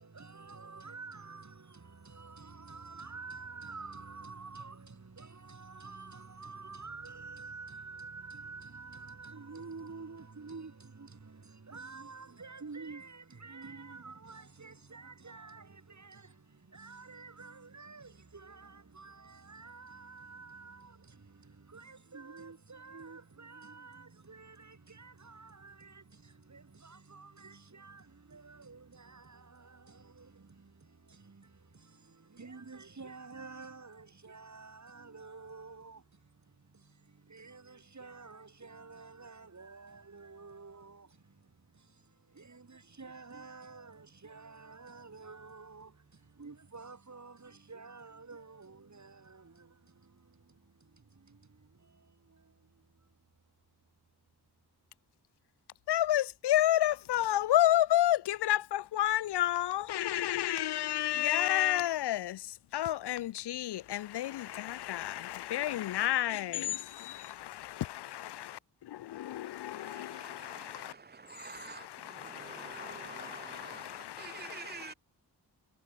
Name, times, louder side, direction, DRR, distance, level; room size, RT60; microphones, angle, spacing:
voice 1, 0.0-53.2, right 4 dB, 45° right, 4.5 m, -50 dB
voice 2, 55.9-70.9 71.4-74.9, left 13 dB, 75° left, 0.5 m, -31 dB
voice 3, 69.7-74.9, right 5 dB, 25° right, 0.4 m, -48 dB
cardioid pair, 65°, 41 cm